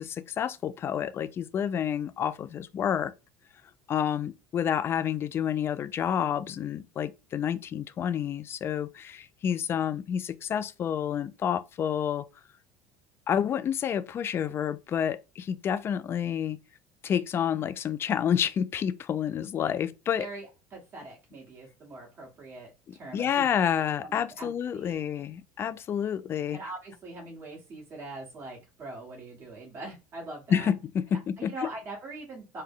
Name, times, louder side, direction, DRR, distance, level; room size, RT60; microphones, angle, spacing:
voice 1, 0.0-3.1 3.9-12.3 13.3-16.6 17.0-20.3 23.1-26.6 30.5-31.5, left 8 dB, 40° left, 0.3 m, -29 dB
voice 2, 20.1-23.5 24.0-25.0 26.5-30.7 31.4-32.6, right 2 dB, 40° right, 1.5 m, -42 dB
3.3 x 2.2 x 3.6 m
supercardioid pair, 100°, 7 cm